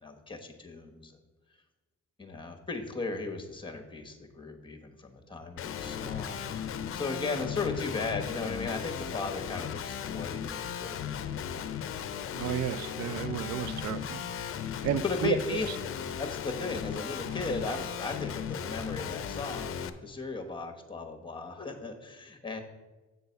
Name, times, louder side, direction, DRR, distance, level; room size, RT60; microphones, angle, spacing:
voice 1, 0.0-1.2 2.2-11.2 15.0-15.7 16.2-22.6, left 3 dB, 15° left, 4 dB, 1.1 m, -36 dB
Guitar, 5.6-19.9, left 8 dB, 50° left, 0.6 m, -36 dB
voice 2, 12.3-14.2 14.8-15.6, right 10 dB, 65° right, 15 dB, 0.5 m, -32 dB
7.9 x 3.9 x 6.8 m, 1.2 s
cardioid pair, 100°, 29 cm